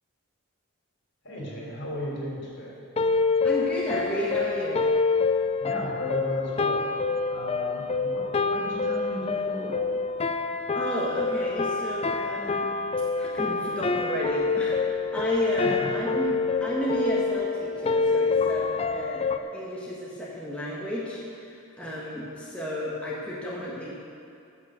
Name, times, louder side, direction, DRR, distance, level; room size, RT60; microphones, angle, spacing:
voice 1, 1.2-2.9 5.6-9.8 15.6-16.2, equal, 60° left, -3 dB, 3.4 m, -35 dB
sound 1, 3.0-19.4, left 4 dB, 30° left, 0.4 m, -26 dB
voice 2, 3.4-4.8 10.7-12.7 13.2-16.3 16.6-19.2 19.5-23.9, equal, 5° left, -7 dB, 1.6 m, -32 dB
15.5 x 6.4 x 6.5 m, 2.5 s
head